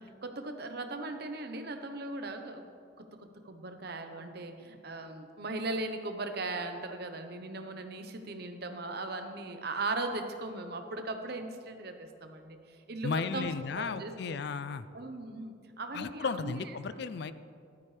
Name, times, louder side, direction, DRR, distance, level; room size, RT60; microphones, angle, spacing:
voice 1, 0.0-2.6 3.0-13.5 13.7-14.4 14.9-16.6, right 2 dB, 55° right, 6 dB, 1.0 m, -38 dB
voice 2, 13.0-14.9 15.9-17.3, left 5 dB, 60° left, 14 dB, 0.4 m, -34 dB
14.5 x 12.0 x 3.3 m, 2.4 s
head